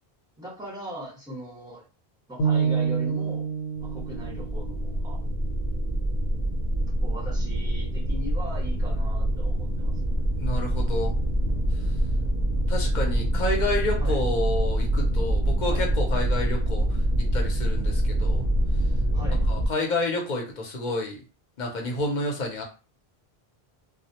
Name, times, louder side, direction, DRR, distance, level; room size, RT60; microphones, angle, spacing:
voice 1, 0.4-1.8 2.3-3.5 3.8-5.2 7.0-9.9 14.0-14.2 15.7-15.9 19.1-19.4, equal, 5° right, -4 dB, 0.9 m, -39 dB
sound 1, 2.4-6.5, right 6 dB, 85° left, 1.0 m, -29 dB
sound 2, 3.8-19.7, right 1 dB, 55° right, 0.5 m, -25 dB
voice 2, 10.4-11.2 11.7-11.9 12.7-18.5 19.5-21.2 21.6-22.6, left 2 dB, 55° left, 1 dB, 0.7 m, -29 dB
2.3 x 2.0 x 2.8 m, 0.33 s
omnidirectional pair, 1.0 m